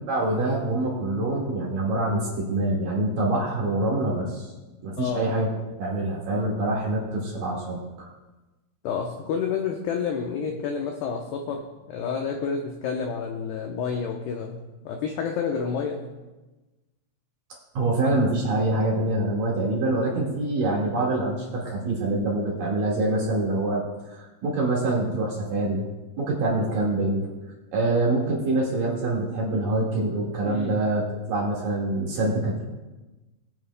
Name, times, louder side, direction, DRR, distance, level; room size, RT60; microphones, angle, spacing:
voice 1, 0.1-4.5 4.8-5.5 5.8-8.1 17.7-25.9 26.2-27.3 27.7-31.0 31.3-32.6, right 2 dB, 55° right, -3 dB, 2.8 m, -25 dB
voice 2, 5.0-5.3 8.8-14.6 14.8-16.0 30.5-30.8, left 6 dB, 85° left, 1 dB, 2.3 m, -29 dB
22.0 x 8.7 x 2.2 m, 1.1 s
omnidirectional pair, 5.8 m